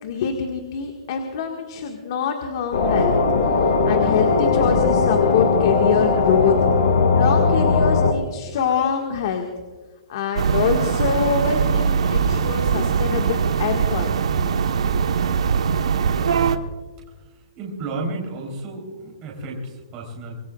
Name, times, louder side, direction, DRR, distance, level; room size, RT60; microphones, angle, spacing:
voice 1, 0.0-3.2 3.6-6.6 7.1-9.5 10.1-14.3, left 6 dB, 45° left, 3 dB, 1.6 m, -25 dB
sound 1, 2.7-8.1, left 4 dB, 70° left, 2.4 m, -18 dB
sound 2, 10.4-16.6, right 6 dB, 85° right, 1.1 m, -21 dB
voice 2, 17.5-20.4, right 2 dB, 20° right, -1 dB, 3.4 m, -32 dB
25.5 x 20.0 x 2.4 m, 1.4 s
hypercardioid pair, 170°, 3 cm